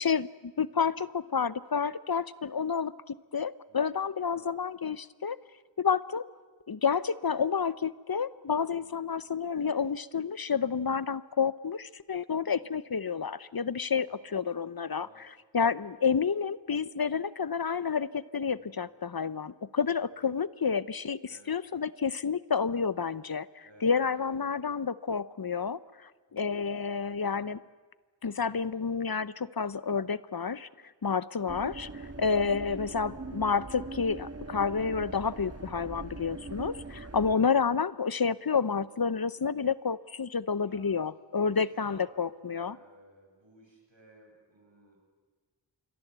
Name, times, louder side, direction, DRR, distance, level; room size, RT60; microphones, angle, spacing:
voice 1, 0.0-5.4 5.8-6.2 6.7-14.1 14.3-15.1 15.5-21.2 21.5-27.6 28.2-30.7 31.0-42.8, left 6 dB, 55° left, 17 dB, 0.8 m, -30 dB
voice 2, 0.7-1.0 3.7-4.5 8.7-9.1 12.4-12.7 14.0-14.5 15.0-15.4 18.6-18.9 19.9-20.3 21.3-21.5 23.6-24.6 26.3-26.7 37.3-37.5 40.6-45.0, right 2 dB, 80° right, 1 dB, 7.6 m, -59 dB
sound 1, 31.5-37.3, right 3 dB, 35° right, 1.4 m, -42 dB
27.5 x 22.5 x 8.1 m, 1.4 s
wide cardioid pair, 50°, 44 cm